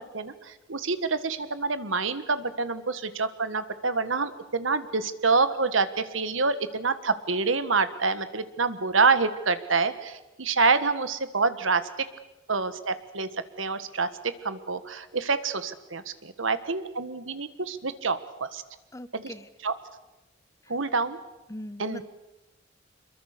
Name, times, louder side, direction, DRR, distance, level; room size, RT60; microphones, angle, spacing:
voice 1, 0.1-11.8 12.5-13.3 13.6-18.6 19.1-19.3 19.6-19.7 20.7-21.2 21.8-22.0, right 4 dB, 70° right, 12 dB, 1.6 m, -27 dB
voice 2, 18.9-19.5 20.6-20.7 21.5-22.0, left 1 dB, 15° left, 15 dB, 0.7 m, -40 dB
26.0 x 22.5 x 6.8 m, 1.0 s
head